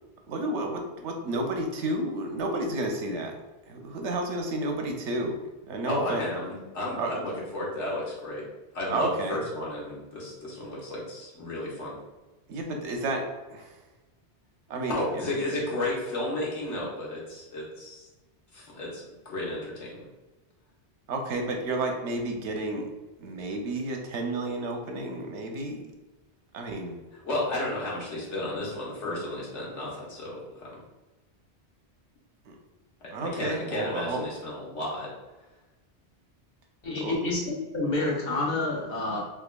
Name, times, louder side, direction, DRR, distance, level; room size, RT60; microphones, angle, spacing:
voice 1, 0.3-3.4 3.7-5.4 5.7-6.2 6.9-7.1 8.9-9.4 12.5-13.8 14.7-15.2 21.1-22.9 23.2-25.8 26.5-27.0 32.5-32.6 33.1-34.2 37.0-37.2, right 2 dB, 90° right, 3 dB, 1.0 m, -31 dB
voice 2, 5.8-8.4 8.7-11.9 14.9-18.1 18.5-20.1 27.2-30.8 33.2-35.1, left 1 dB, 90° left, -4 dB, 1.4 m, -33 dB
voice 3, 36.8-39.2, left 2 dB, 55° left, -2 dB, 1.2 m, -28 dB
3.5 x 3.4 x 2.2 m, 1.1 s
omnidirectional pair, 1.2 m